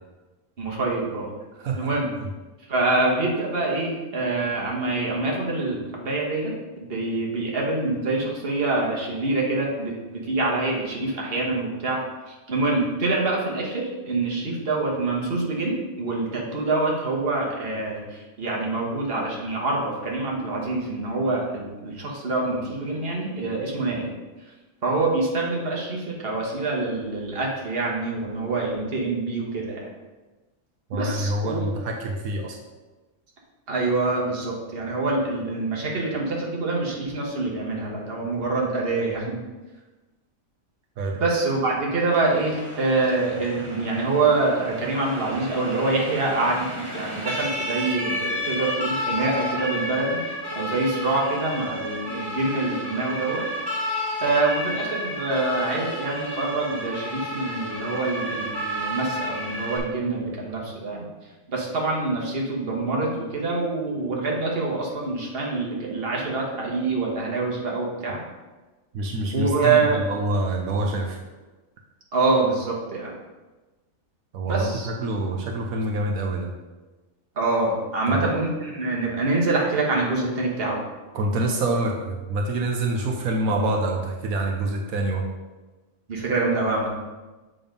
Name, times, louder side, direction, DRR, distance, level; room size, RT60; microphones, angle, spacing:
voice 1, 0.6-1.3 1.8-2.1 2.7-6.5 6.8-12.0 12.3-24.1 24.8-29.9 30.9-31.7 33.7-39.4 41.2-53.4 54.2-61.1 61.5-68.2 69.3-70.0 72.1-73.1 74.4-74.9 77.4-80.8 86.1-86.9, right 3 dB, 45° right, -2 dB, 1.5 m, -25 dB
voice 2, 1.6-1.9 30.9-32.6 41.0-41.2 68.9-71.2 74.3-76.5 78.1-78.3 81.1-85.2, right 2 dB, 80° right, 1 dB, 1.2 m, -26 dB
Siren, 42.1-59.8, equal, 20° right, 1.4 m, -31 dB
6.9 x 3.9 x 5.2 m, 1.2 s
omnidirectional pair, 1.5 m